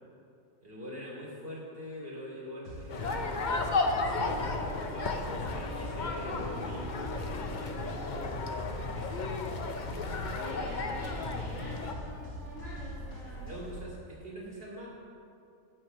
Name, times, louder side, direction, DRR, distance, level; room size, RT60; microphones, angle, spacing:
voice 1, 0.6-9.6 10.4-10.6 13.4-14.9, equal, 40° right, -5 dB, 3.0 m, -44 dB
sound 1, 2.6-13.8, equal, 70° left, 3.2 m, -42 dB
sound 2, 2.9-11.9, left 3 dB, 45° left, 0.6 m, -34 dB
voice 2, 10.2-13.5, equal, ahead, -11 dB, 2.3 m, -47 dB
10.0 x 6.2 x 6.8 m, 2.5 s
omnidirectional pair, 1.5 m